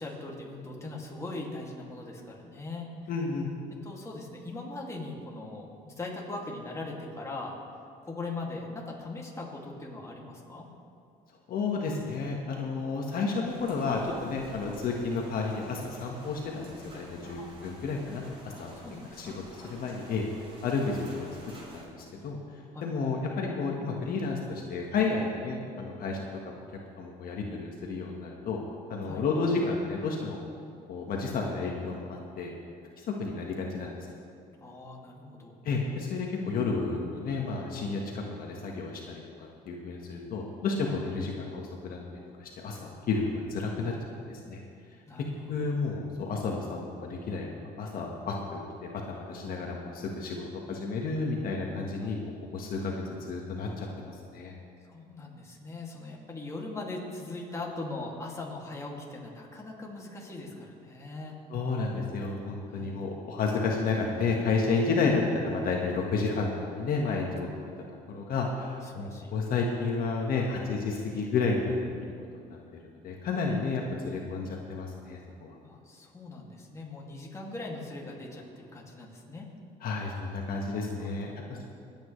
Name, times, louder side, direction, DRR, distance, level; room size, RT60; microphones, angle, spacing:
voice 1, 0.0-2.9 3.8-7.6 8.0-10.7 17.4-17.5 18.8-19.7 22.7-23.1 29.0-29.2 34.6-35.6 45.1-45.5 52.0-52.1 54.8-61.4 62.7-63.0 68.8-69.3 75.6-79.5 81.2-81.7, left 2 dB, 15° left, -2 dB, 2.3 m, -40 dB
voice 2, 3.1-3.5 11.5-18.7 19.2-19.3 19.7-20.2 20.6-21.3 21.7-22.4 22.8-26.5 27.0-28.6 28.9-30.4 30.9-32.5 33.0-34.0 35.6-39.2 39.6-42.0 42.4-43.9 44.3-44.6 45.5-53.0 53.3-54.5 61.5-67.5 68.1-71.9 72.3-72.6 73.0-75.5 79.8-81.7, left 4 dB, 60° left, 0 dB, 1.5 m, -31 dB
sound 1, 13.5-21.8, right 1 dB, 35° right, 3.8 m, -51 dB
25.0 x 8.9 x 3.2 m, 2.4 s
cardioid pair, 110°, 17 cm